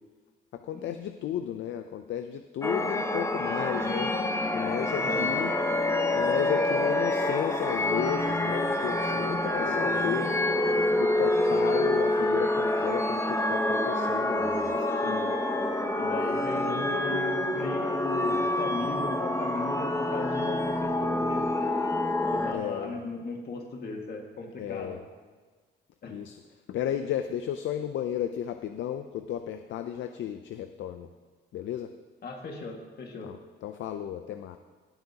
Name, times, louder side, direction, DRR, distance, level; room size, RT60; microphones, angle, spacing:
voice 1, 0.5-4.1 4.5-5.5 6.1-10.4 11.0-14.8 22.5-23.0 24.6-25.0 26.1-26.4 26.7-31.1 31.5-31.9 33.2-34.6, left 10 dB, 70° left, 8 dB, 0.5 m, -33 dB
sound 1, 2.6-22.5, left 1 dB, 15° left, 1.0 m, -27 dB
voice 2, 4.9-5.4 9.6-9.8 15.0-15.2 16.0-21.4 22.3-25.0 26.0-26.1 32.2-33.3, left 3 dB, 55° left, 1 dB, 1.9 m, -37 dB
18.0 x 7.9 x 2.9 m, 1.4 s
cardioid pair, 90°, 20 cm